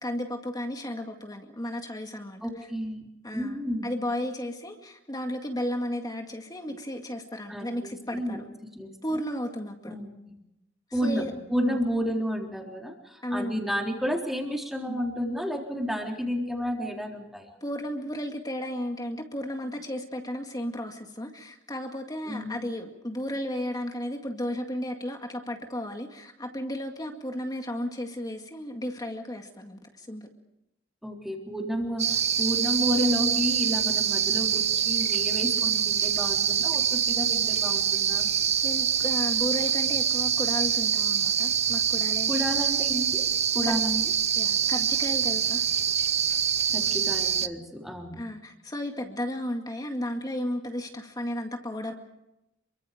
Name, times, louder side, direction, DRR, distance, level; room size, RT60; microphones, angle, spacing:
voice 1, 0.0-2.4 3.2-8.4 9.0-10.0 11.0-11.3 11.6-11.8 13.2-13.6 14.9-15.0 17.6-30.2 38.6-42.4 43.6-43.8 44.4-45.6 48.2-51.9, left 1 dB, 20° left, 4 dB, 2.1 m, -34 dB
voice 2, 2.4-3.0 3.3-3.9 7.5-8.4 8.8-8.9 9.9-10.4 10.9-17.5 22.3-22.6 31.0-38.3 42.3-43.2 43.5-44.0 46.7-48.2, equal, ahead, 1 dB, 3.8 m, -31 dB
sound 1, 32.0-47.5, right 8 dB, 35° right, 0.8 m, -25 dB
27.5 x 24.0 x 5.1 m, 0.89 s
head